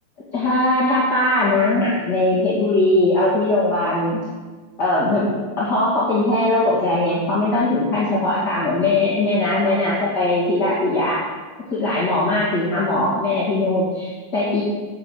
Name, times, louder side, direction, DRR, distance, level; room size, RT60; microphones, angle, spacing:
voice 1, 0.3-4.2 4.8-5.3 5.6-11.2 11.7-14.6, left 2 dB, 35° left, -7 dB, 2.3 m, -20 dB
9.9 x 5.5 x 6.6 m, 1.3 s
omnidirectional pair, 3.5 m